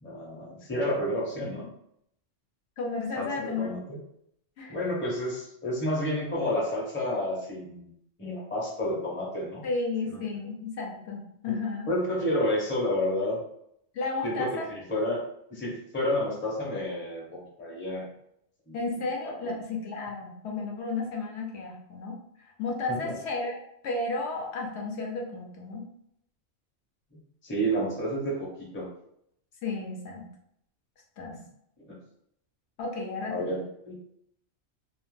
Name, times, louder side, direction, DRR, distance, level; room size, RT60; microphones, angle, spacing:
voice 1, 0.0-1.7 3.2-4.0 4.7-7.9 8.2-9.6 10.1-10.2 11.9-13.4 14.2-15.2 15.5-18.1 18.7-18.8 22.9-23.1 27.4-28.5 28.7-28.9 31.9-32.0 33.3-33.6 33.9-34.0, equal, 15° left, -4 dB, 0.5 m, -30 dB
voice 2, 2.8-3.8 4.6-4.8 9.6-11.9 13.9-14.7 18.7-23.6 23.8-25.9 29.6-30.2 31.2-31.4 32.8-33.6, left 3 dB, 75° left, 0 dB, 0.8 m, -33 dB
2.4 x 2.0 x 3.0 m, 0.73 s
omnidirectional pair, 1.2 m